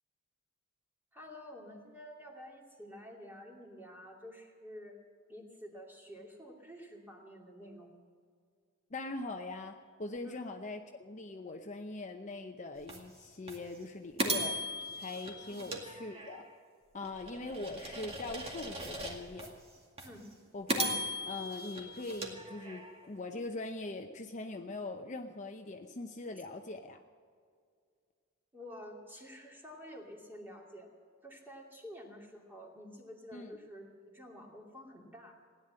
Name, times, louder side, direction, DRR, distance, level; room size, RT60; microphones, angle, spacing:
voice 1, 1.1-5.0 5.3-7.9 10.2-10.5 15.5-15.6 20.0-20.3 28.5-30.9 31.2-35.3, equal, 10° right, 0 dB, 2.6 m, -50 dB
voice 2, 8.9-14.6 15.0-16.4 16.9-19.5 20.5-27.0 33.3-33.6, left 2 dB, 35° left, 5 dB, 0.7 m, -42 dB
sound 1, 12.9-13.0 13.5-13.6 14.2-16.5 17.1-19.5 20.0-20.1 20.7-23.1, right 1 dB, 30° right, 2.2 m, -38 dB
17.0 x 10.5 x 7.6 m, 2.1 s
head